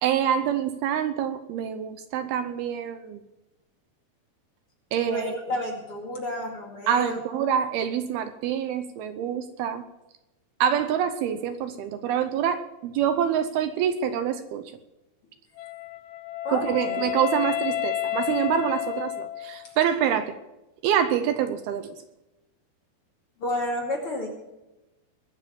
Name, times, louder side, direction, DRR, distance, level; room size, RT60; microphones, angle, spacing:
voice 1, 0.0-3.2 4.9-5.4 6.9-9.9 10.6-14.6 16.5-20.3 20.8-21.9, right 9 dB, 75° right, 10 dB, 2.5 m, -26 dB
voice 2, 5.1-7.2 16.4-17.0 19.6-19.7 23.4-24.3, left 1 dB, 40° left, 0 dB, 2.7 m, -31 dB
Wind instrument woodwind instrument, 15.6-19.8, left 12 dB, 75° left, 2.1 m, -30 dB
21.5 x 7.8 x 7.0 m, 0.99 s
omnidirectional pair, 4.8 m